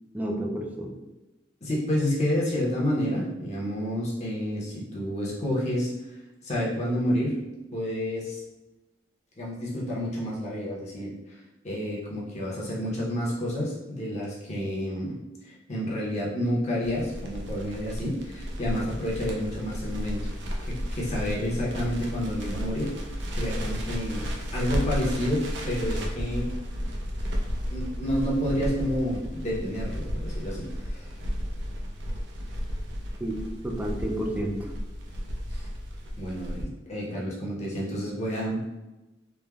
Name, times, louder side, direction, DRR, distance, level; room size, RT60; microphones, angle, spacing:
voice 1, 0.1-1.0 33.2-34.7, right 1 dB, 10° right, 0 dB, 0.3 m, -31 dB
voice 2, 1.6-7.4 7.7-8.4 9.4-11.4 11.6-15.2 15.4-20.3 20.6-24.3 24.5-26.5 27.7-31.1 35.5-35.6 36.2-38.6, equal, 40° left, -5 dB, 0.7 m, -29 dB
Crackle, 16.8-36.6, equal, 85° right, 0.5 m, -33 dB
3.2 x 2.1 x 2.3 m, 1.0 s
head